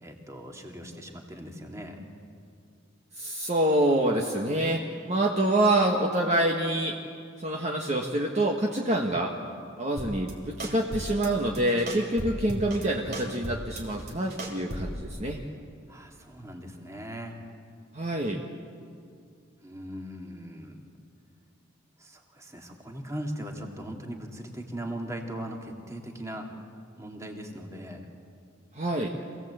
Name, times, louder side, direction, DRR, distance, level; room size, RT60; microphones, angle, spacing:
voice 1, 0.0-2.0 15.9-17.3 19.6-20.9 22.0-26.5 27.0-28.1, equal, 15° right, 2 dB, 2.2 m, -39 dB
voice 2, 3.2-7.0 7.4-9.3 9.8-15.4 17.9-18.4 28.7-29.1, right 1 dB, 35° right, 0 dB, 1.4 m, -26 dB
sound 1, 10.0-10.3 10.6-11.3 11.5-12.8 13.1-15.0, right 1 dB, 50° right, 3.3 m, -36 dB
26.5 x 17.0 x 8.1 m, 2.3 s
head